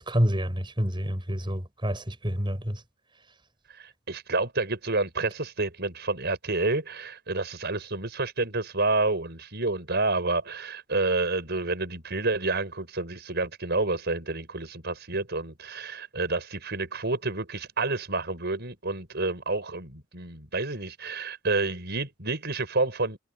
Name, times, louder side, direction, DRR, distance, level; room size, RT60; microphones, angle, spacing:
voice 1, 0.0-2.8, equal, 25° right, 6.7 m, -28 dB
voice 2, 3.7-23.2, right 3 dB, 55° right, 5.9 m, -29 dB
head